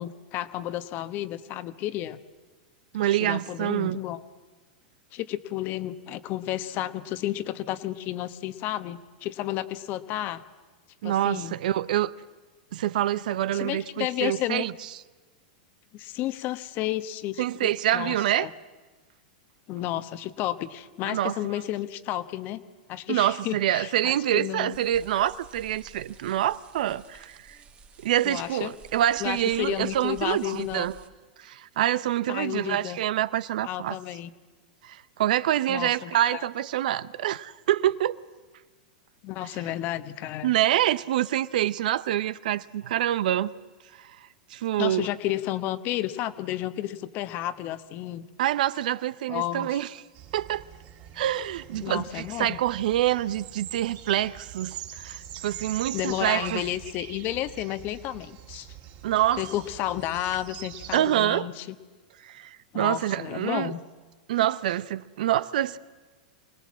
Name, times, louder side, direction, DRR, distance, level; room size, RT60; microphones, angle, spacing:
voice 1, 0.0-2.2 3.0-4.2 5.1-10.4 11.0-11.6 13.5-14.7 15.9-18.5 19.7-22.6 22.9-24.8 28.2-28.7 29.2-30.9 32.3-33.0 33.6-34.3 35.7-36.5 39.2-40.5 44.8-48.3 49.3-49.8 51.8-52.6 55.9-58.7 59.4-61.7 62.7-63.8, left 14 dB, 45° left, 1.2 m, -32 dB
voice 2, 2.9-4.0 11.0-12.1 12.7-14.7 17.4-18.5 21.0-21.4 23.1-27.6 28.0-31.0 31.4-34.0 34.8-38.2 40.4-43.5 44.0-44.1 44.5-45.1 48.4-49.9 50.3-50.6 51.2-56.6 59.0-59.4 60.9-61.5 62.2-63.7 64.3-65.8, right 12 dB, 70° right, 0.7 m, -26 dB
sound 1, 24.7-31.1, right 4 dB, 25° right, 1.5 m, -53 dB
sound 2, 50.1-61.0, right 11 dB, 55° right, 3.8 m, -44 dB
25.0 x 18.5 x 7.5 m
hypercardioid pair, 115°, 5 cm